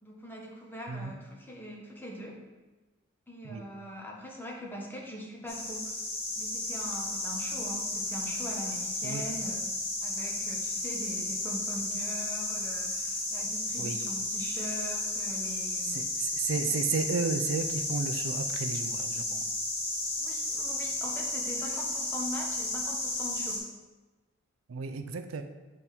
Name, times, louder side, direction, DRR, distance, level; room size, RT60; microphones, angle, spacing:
voice 1, 0.0-2.4 3.3-6.0 6.3-9.7 10.0-16.1 20.2-23.6, equal, 10° left, -2 dB, 1.0 m, -42 dB
sound 1, 5.5-23.6, left 2 dB, 30° left, 1.6 m, -33 dB
voice 2, 15.9-19.5 24.7-25.4, right 5 dB, 85° right, 8 dB, 0.5 m, -33 dB
6.9 x 3.6 x 4.4 m, 1.2 s
head